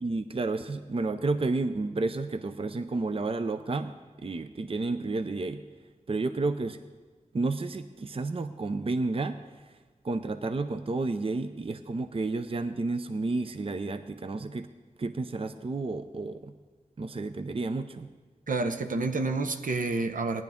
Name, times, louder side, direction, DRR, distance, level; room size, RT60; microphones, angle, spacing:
voice 1, 0.0-4.0 4.2-5.6 6.1-6.8 7.3-9.4 9.7-9.8 10.0-14.7 15.0-16.5 17.0-18.1, right 3 dB, 45° right, 9 dB, 0.5 m, -31 dB
voice 2, 18.5-20.4, right 3 dB, 80° right, 6 dB, 0.8 m, -29 dB
17.5 x 10.5 x 3.6 m, 1.4 s
wide cardioid pair, 85°, 14 cm